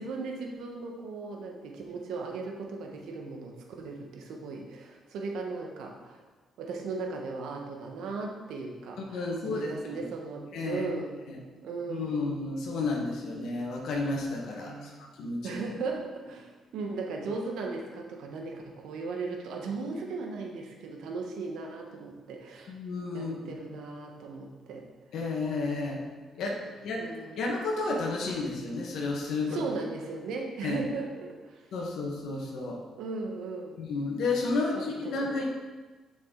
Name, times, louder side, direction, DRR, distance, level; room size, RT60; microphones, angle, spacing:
voice 1, 0.0-6.2 6.6-11.2 11.6-12.3 14.6-15.0 15.4-22.7 23.1-24.8 27.0-27.4 29.5-31.6 33.0-33.8 34.7-35.2, right 3 dB, 80° right, 1 dB, 1.2 m, -37 dB
voice 2, 9.0-10.0 10.5-10.9 11.3-11.4 11.9-14.9 15.2-15.6 22.7-23.3 25.1-26.0 26.3-27.0 27.4-29.6 30.6-30.8 31.7-32.8 33.8-35.4, left 3 dB, 75° left, -1 dB, 1.4 m, -32 dB
7.6 x 5.8 x 3.9 m, 1.3 s
cardioid pair, 90°, 0 cm